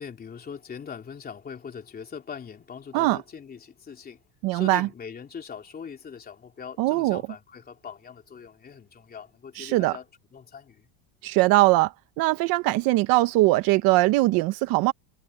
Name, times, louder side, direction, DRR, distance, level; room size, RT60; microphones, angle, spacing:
voice 1, 0.0-4.2 4.5-10.9, left 6 dB, 20° left, 3.1 m, -41 dB
voice 2, 4.4-4.9 6.8-7.2 9.6-10.0 11.2-14.9, right 19 dB, 50° right, 1.0 m, -21 dB
cardioid pair, 165°, 47 cm